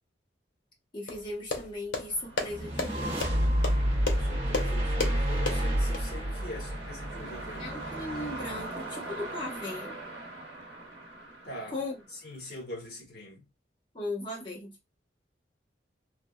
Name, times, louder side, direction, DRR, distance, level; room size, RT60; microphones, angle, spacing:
voice 1, 0.9-3.2 7.6-10.0 11.7-12.0 13.9-14.8, left 2 dB, 25° left, 0.9 m, -37 dB
sound 1, 1.1-6.0, left 3 dB, 80° left, 0.7 m, -35 dB
sound 2, 2.1-12.3, right 2 dB, 60° right, 1.1 m, -42 dB
sound 3, 2.5-7.8, equal, 30° right, 0.6 m, -29 dB
voice 2, 4.2-7.7 11.4-11.8 12.1-13.5, left 1 dB, 55° left, 1.1 m, -43 dB
3.3 x 2.0 x 2.3 m
head